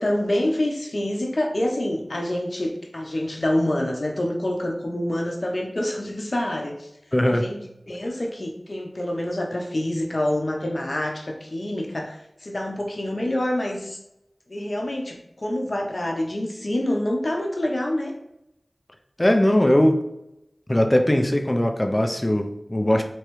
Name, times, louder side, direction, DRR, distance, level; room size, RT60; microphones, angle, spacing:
voice 1, 0.0-6.9 7.3-7.6 7.9-14.0 14.5-18.1, left 1 dB, 60° left, 1 dB, 0.7 m, -26 dB
voice 2, 7.1-7.5 19.2-20.0 20.7-23.0, left 1 dB, 25° left, 5 dB, 0.5 m, -20 dB
3.4 x 3.0 x 3.0 m, 0.83 s
wide cardioid pair, 40°, 0 cm